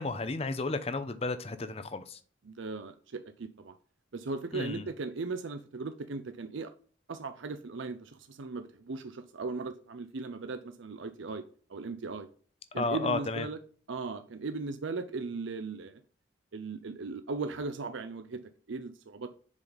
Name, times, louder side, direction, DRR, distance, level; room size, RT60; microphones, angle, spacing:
voice 1, 0.0-2.2 4.5-4.9 12.7-13.5, left 3 dB, 30° left, 0.6 m, -33 dB
voice 2, 2.5-3.7 4.1-6.7 7.1-11.4 11.7-12.3 12.7-13.6 13.9-16.0 16.5-18.4 18.7-19.3, right 3 dB, 70° right, 0.6 m, -38 dB
7.2 x 5.1 x 4.0 m
head